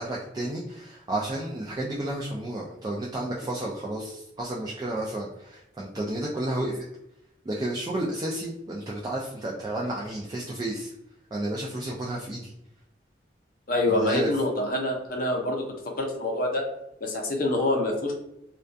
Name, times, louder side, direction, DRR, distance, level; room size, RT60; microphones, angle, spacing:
voice 1, 0.0-6.8 7.4-10.9 11.3-12.5 13.9-14.3, right 1 dB, 20° right, -3 dB, 0.3 m, -31 dB
voice 2, 13.7-15.6 16.0-16.6 17.0-18.1, left 1 dB, 50° left, 1 dB, 0.6 m, -26 dB
2.2 x 2.2 x 2.6 m, 0.84 s
head